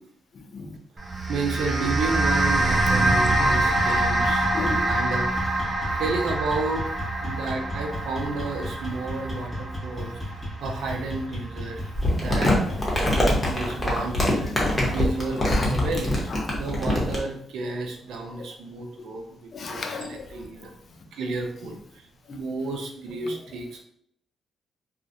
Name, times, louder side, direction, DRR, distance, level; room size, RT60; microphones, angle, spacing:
voice 1, 0.4-0.8 2.9-3.9 4.5-4.9 12.9-13.1 14.4-14.8 15.4-15.7 16.3-16.4 18.4-18.5 19.5-20.3 22.3-22.4, left 3 dB, 55° left, 5 dB, 0.4 m, -34 dB
sound 1, 1.0-11.5, right 2 dB, 30° right, 0.5 m, -25 dB
voice 2, 1.3-4.5 4.9-5.3 6.0-6.9 7.2-11.8 12.1-12.5 13.1-14.5 14.8-20.7 21.1-22.1 22.3-23.8, right 3 dB, 80° right, 3 dB, 0.4 m, -31 dB
sound 2, 2.1-14.6, equal, 5° right, 0.9 m, -36 dB
Crumpling crinkling, 11.9-17.2, left 1 dB, 20° left, 0.9 m, -23 dB
2.3 x 2.1 x 2.6 m, 0.67 s
cardioid pair, 75°, 0 cm